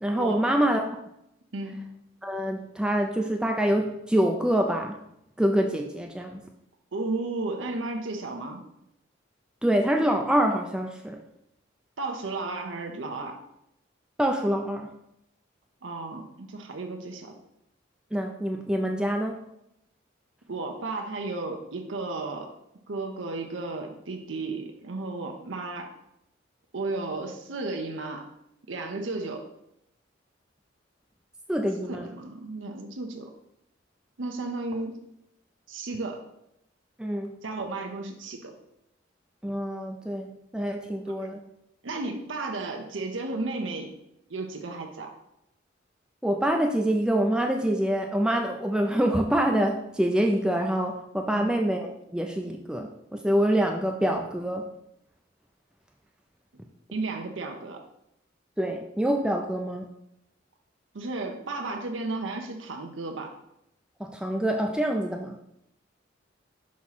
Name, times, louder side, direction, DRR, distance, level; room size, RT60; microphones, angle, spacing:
voice 1, 0.0-1.0 2.2-5.0 5.4-6.5 9.6-11.2 14.2-14.9 18.1-19.4 31.5-32.1 37.0-37.4 39.4-41.5 46.2-54.6 58.6-59.9 64.0-65.4, right 1 dB, 5° right, 2 dB, 0.4 m, -26 dB
voice 2, 6.9-8.6 12.0-13.4 15.8-17.3 20.5-22.5 22.9-25.9 26.7-28.3 28.7-29.4 31.8-33.3 34.2-35.0 35.7-36.2 37.4-38.5 41.2-41.3 41.8-43.9 44.3-45.1 51.3-51.6 56.5-56.6 56.9-57.8 60.9-63.4, right 3 dB, 85° right, 3 dB, 0.8 m, -33 dB
6.2 x 3.0 x 5.6 m, 0.81 s
head